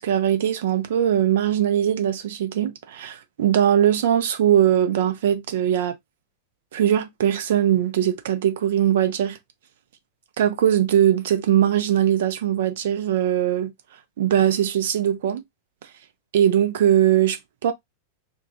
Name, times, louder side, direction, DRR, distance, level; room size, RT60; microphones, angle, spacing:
voice 1, 0.0-5.9 6.7-9.4 10.4-13.7 14.2-15.4 16.3-17.7, right 10 dB, 55° right, 0.5 m, -20 dB
2.3 x 2.3 x 2.6 m
figure-of-eight pair, 90°, 0 cm